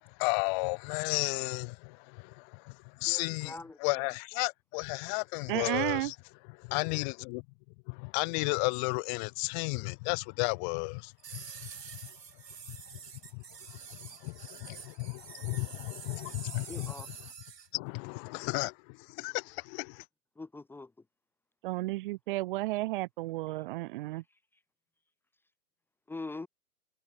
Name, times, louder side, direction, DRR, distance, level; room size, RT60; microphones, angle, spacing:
voice 1, 0.0-6.1 6.6-7.4 7.9-11.4 12.7-13.0 13.3-13.4 13.7-17.1 17.7-20.0, left 37 dB, 30° left, 1.8 m, -34 dB
voice 2, 3.1-3.8 16.7-17.1 20.4-20.9 26.1-26.5, left 3 dB, 5° left, 1.5 m, -42 dB
voice 3, 5.5-6.1 21.6-24.2, right 19 dB, 30° right, 1.2 m, -32 dB
sound 1, 11.2-17.7, right 7 dB, 80° right, 2.9 m, -47 dB
hypercardioid pair, 140°, 48 cm